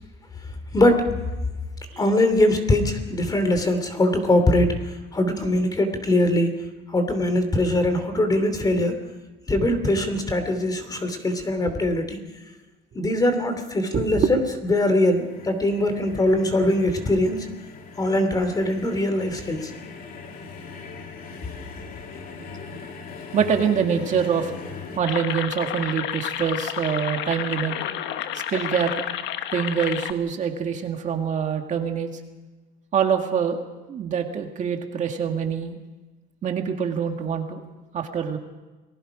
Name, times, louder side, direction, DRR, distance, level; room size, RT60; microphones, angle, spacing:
voice 1, 0.7-1.1 2.0-6.5 6.9-9.0 9.5-12.2 12.9-17.4 18.0-19.7, left 1 dB, 20° left, 8 dB, 3.0 m, -22 dB
voice 2, 13.9-14.3 23.3-24.5 25.0-27.8 28.3-29.0 29.5-32.1 32.9-33.6 33.9-35.8 36.4-37.6 37.9-38.4, right 7 dB, 40° right, 4 dB, 2.0 m, -25 dB
sound 1, 15.1-25.0, left 4 dB, 50° left, 2.8 m, -40 dB
sound 2, 25.0-30.1, left 11 dB, 70° left, 1.3 m, -30 dB
29.0 x 20.5 x 5.0 m, 1.2 s
cardioid pair, 150°, 19 cm